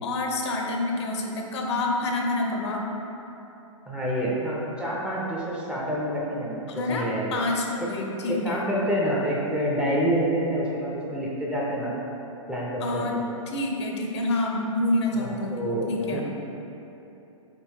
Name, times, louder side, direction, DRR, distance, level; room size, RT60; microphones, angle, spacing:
voice 1, 0.0-2.9 6.7-8.7 12.8-13.1 13.5-16.2, left 2 dB, 55° left, 1 dB, 0.6 m, -28 dB
voice 2, 3.9-6.6 6.9-7.3 7.8-7.9 8.3-11.9 12.5-13.2 15.1-16.2, equal, 5° right, -6 dB, 0.5 m, -27 dB
4.0 x 3.8 x 2.7 m, 2.9 s
hypercardioid pair, 115°, 17 cm